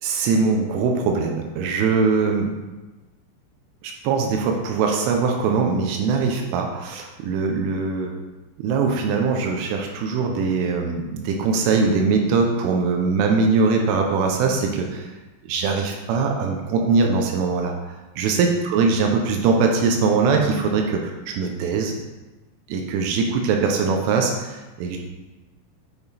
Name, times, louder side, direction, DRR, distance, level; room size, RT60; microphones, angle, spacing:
voice 1, 0.0-2.5 3.8-8.1 8.6-15.1 15.4-17.7 18.2-21.9 22.7-25.0, right 4 dB, 80° right, 2 dB, 3.2 m, -22 dB
8.9 x 5.6 x 4.1 m, 1.1 s
omnidirectional pair, 5.9 m